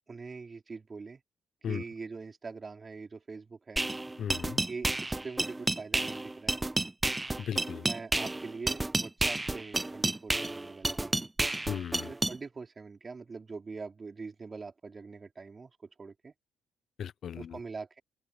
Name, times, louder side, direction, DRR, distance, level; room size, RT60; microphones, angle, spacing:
voice 1, 0.1-1.2 1.6-3.8 4.7-6.6 7.8-11.3 12.1-16.3 17.4-18.0, right 4 dB, 30° right, 4.6 m, -43 dB
sound 1, 3.8-12.4, right 2 dB, 15° right, 0.3 m, -31 dB
voice 2, 4.2-4.6 7.4-7.9 11.7-12.1 17.0-17.6, left 8 dB, 60° left, 0.9 m, -36 dB
open air
cardioid pair, 90°, 0 cm